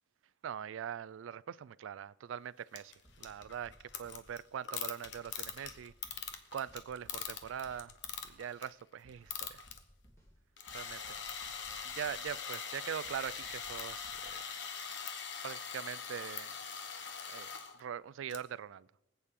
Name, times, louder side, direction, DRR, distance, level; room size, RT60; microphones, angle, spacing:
voice 1, 0.4-6.1 6.5-7.9 8.2-9.6 10.7-11.2 11.8-14.4 15.4-16.6 17.3-17.5 17.7-18.9, right 8 dB, 85° right, 0.3 m, -42 dB
sound 1, 2.8-8.8 9.1-9.8 10.6-17.8 18.3-18.4, left 7 dB, 65° left, 1.1 m, -42 dB
sound 2, 3.0-4.3 5.0-6.3 6.7-8.3 9.0-10.3 10.7-12.3 13.0-14.3, equal, 15° left, 2.0 m, -61 dB
23.5 x 8.3 x 3.7 m
head